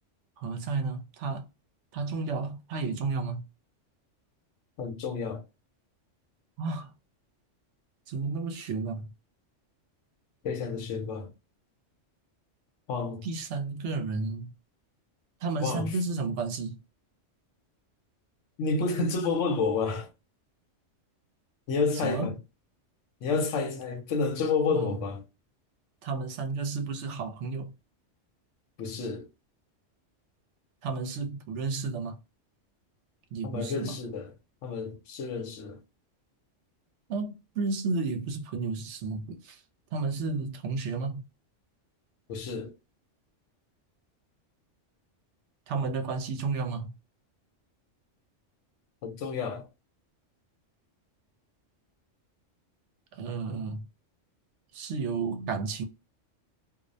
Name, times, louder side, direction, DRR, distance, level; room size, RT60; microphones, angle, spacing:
voice 1, 0.4-1.4 1.9-3.4 6.6-6.9 8.1-9.1 13.2-14.5 15.4-16.8 22.0-22.3 24.7-24.9 26.0-27.7 30.8-32.2 33.3-33.9 37.1-39.6 39.9-41.2 45.7-46.9 53.1-53.8 54.7-55.8, right 4 dB, 75° right, 0.9 m, -32 dB
voice 2, 4.8-5.4 10.4-11.3 12.9-13.2 15.6-16.0 18.6-20.1 21.7-22.4 23.2-25.2 28.8-29.3 33.4-34.3 34.6-35.8 42.3-42.7 49.0-49.7, left 4 dB, 80° left, 1.0 m, -30 dB
2.4 x 2.0 x 2.5 m
omnidirectional pair, 1.3 m